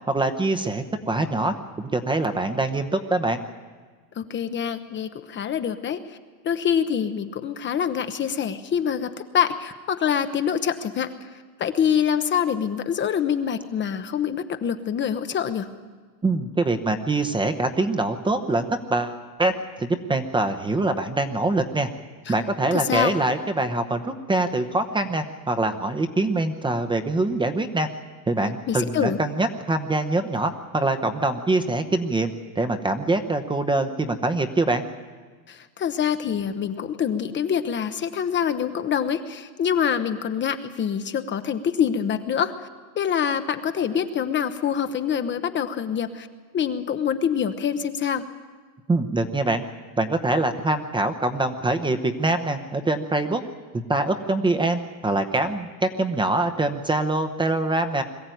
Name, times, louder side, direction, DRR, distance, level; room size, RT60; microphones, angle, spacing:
voice 1, 0.1-3.4 16.2-19.5 19.8-21.9 22.3-27.9 28.3-32.3 32.6-34.8 48.9-49.6 50.0-53.4 53.9-58.0, right 2 dB, 10° right, 7 dB, 0.8 m, -24 dB
voice 2, 4.1-6.2 6.4-15.7 22.3-22.4 22.7-23.1 28.7-29.2 35.5-42.7 43.0-46.3 46.5-48.2, left 8 dB, 25° left, 9 dB, 0.8 m, -25 dB
21.5 x 14.0 x 9.2 m, 1.5 s
supercardioid pair, 130°, 47 cm